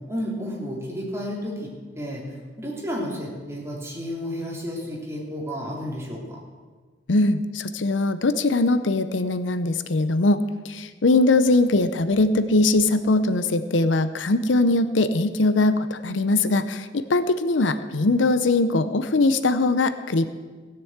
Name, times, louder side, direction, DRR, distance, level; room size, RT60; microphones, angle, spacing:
voice 1, 0.1-6.4, equal, 15° right, -3 dB, 3.2 m, -32 dB
voice 2, 7.1-10.4 10.6-20.3, left 2 dB, 85° left, 12 dB, 0.7 m, -21 dB
16.5 x 6.9 x 8.0 m, 1.4 s
head